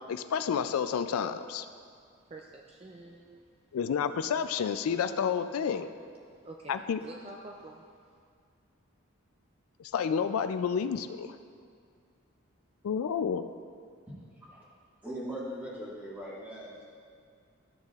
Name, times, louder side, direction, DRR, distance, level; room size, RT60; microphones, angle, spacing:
voice 1, 0.1-1.7 3.7-5.9 6.7-7.0 9.8-11.3 12.8-13.5, left 7 dB, 90° left, 11 dB, 0.3 m, -30 dB
voice 2, 2.2-3.5 6.3-6.7 7.0-8.2, right 2 dB, 25° right, 0 dB, 0.4 m, -48 dB
voice 3, 15.0-16.8, equal, 10° right, -8 dB, 1.7 m, -39 dB
13.0 x 6.5 x 2.4 m, 2.2 s
head